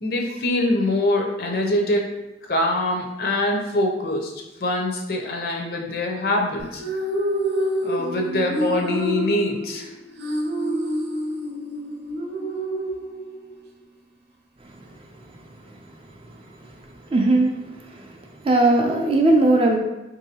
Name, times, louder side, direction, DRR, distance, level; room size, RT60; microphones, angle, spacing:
voice 1, 0.0-2.0 2.5-4.3 4.6-6.8 7.8-9.9, left 1 dB, 55° left, 1 dB, 0.5 m, -24 dB
sound 1, 6.6-13.6, right 1 dB, 70° right, 0.6 m, -27 dB
voice 2, 17.1-17.5 17.9-18.0 18.4-19.8, right 2 dB, 30° right, 2 dB, 0.3 m, -18 dB
3.8 x 2.6 x 2.8 m, 1.0 s
head